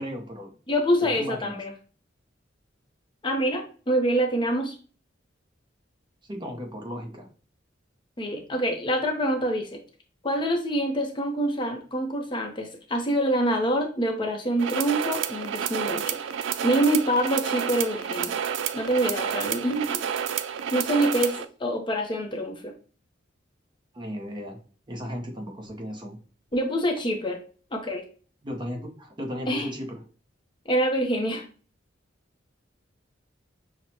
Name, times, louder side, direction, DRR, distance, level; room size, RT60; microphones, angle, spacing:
voice 1, 0.0-0.5 1.0-1.6 6.3-7.3 23.9-24.6 24.9-26.2 28.4-30.0, equal, 25° right, 2 dB, 0.7 m, -35 dB
voice 2, 0.7-1.7 3.2-4.8 8.2-9.8 10.2-16.2 16.6-18.4 18.7-20.0 20.7-22.7 26.5-27.4 27.7-28.0 29.5-29.7 30.7-31.4, right 1 dB, 25° left, 3 dB, 0.6 m, -26 dB
sound 1, 14.6-21.4, right 8 dB, 70° right, 0.3 m, -30 dB
6.1 x 2.0 x 2.8 m, 0.39 s
head